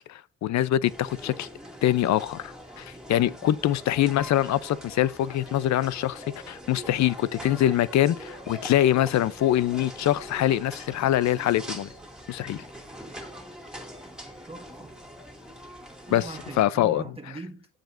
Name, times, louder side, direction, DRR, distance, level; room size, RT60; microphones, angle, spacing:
voice 1, 0.0-1.5 1.8-11.9 12.3-12.6 16.1-16.3 16.6-17.0, left 12 dB, 65° left, 0.6 m, -24 dB
sound 1, 0.8-16.6, equal, ahead, 2.3 m, -43 dB
voice 2, 3.1-3.6 14.5-14.9 16.1-17.8, right 3 dB, 20° right, 1.5 m, -41 dB
15.0 x 5.1 x 2.6 m
cardioid pair, 90°, 30 cm